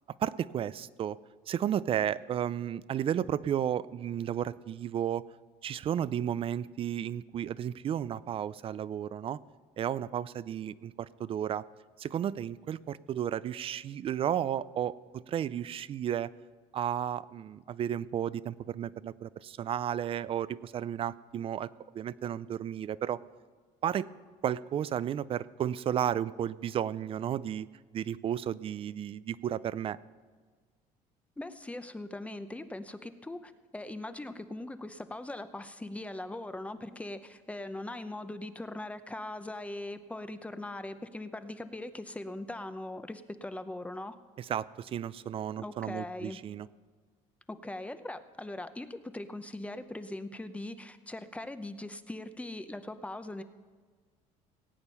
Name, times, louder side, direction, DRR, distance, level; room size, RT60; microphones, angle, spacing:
voice 1, 0.2-1.2 1.5-5.2 5.6-9.4 9.8-11.6 12.0-16.3 16.7-21.7 21.9-23.2 23.8-24.1 24.4-27.7 27.9-30.0 44.4-46.7, right 10 dB, 40° right, 18 dB, 0.4 m, -33 dB
voice 2, 31.4-44.2 45.6-46.4 47.5-53.4, left 1 dB, 10° left, 10 dB, 0.7 m, -40 dB
18.5 x 8.9 x 5.5 m, 1.5 s
cardioid pair, 125°, 15 cm